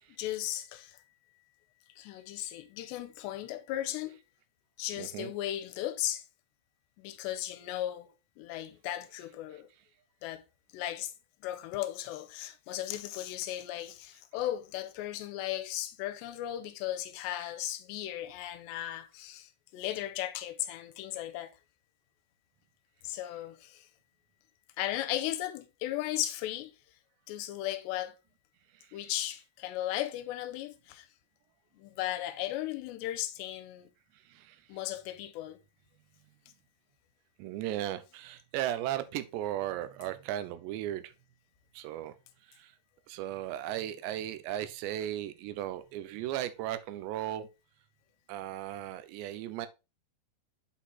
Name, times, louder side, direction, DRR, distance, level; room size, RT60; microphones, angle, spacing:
voice 1, 0.1-1.0 2.0-4.2 4.8-6.3 7.0-9.7 10.2-10.4 10.7-11.1 11.4-21.6 23.0-23.9 24.8-26.7 27.3-28.1 28.9-31.1 31.7-33.9 34.7-35.6, left 13 dB, 90° left, 2.9 m, -36 dB
voice 2, 5.0-5.3 34.3-34.6 37.4-41.1 41.7-42.1 42.6-42.7 43.1-47.5 48.3-49.7, right 12 dB, 85° right, 2.9 m, -36 dB
8.3 x 4.0 x 3.9 m
omnidirectional pair, 5.0 m